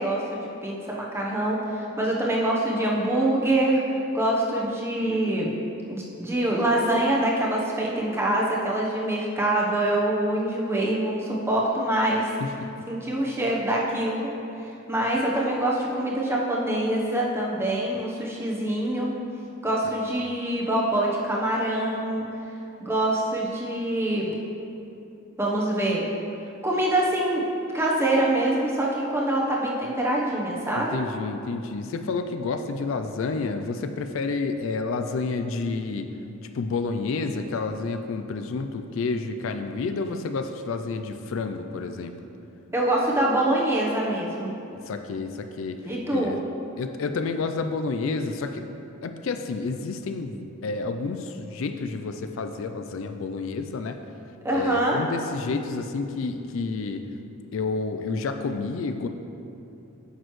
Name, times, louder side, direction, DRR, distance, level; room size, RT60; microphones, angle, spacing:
voice 1, 0.0-3.8 4.1-5.5 5.9-12.3 12.9-14.3 14.6-19.1 19.6-22.2 22.8-24.4 25.4-26.0 26.6-27.4 27.7-31.0 42.7-44.5 45.8-46.4 54.4-55.0, right 1 dB, 10° right, -3 dB, 0.9 m, -25 dB
voice 2, 12.4-12.9 30.7-36.1 36.5-42.1 44.8-45.8 46.1-46.4 46.8-48.7 49.0-54.0 54.5-57.1 57.5-59.1, left 4 dB, 65° left, 7 dB, 0.4 m, -30 dB
9.2 x 6.2 x 3.1 m, 2.8 s
head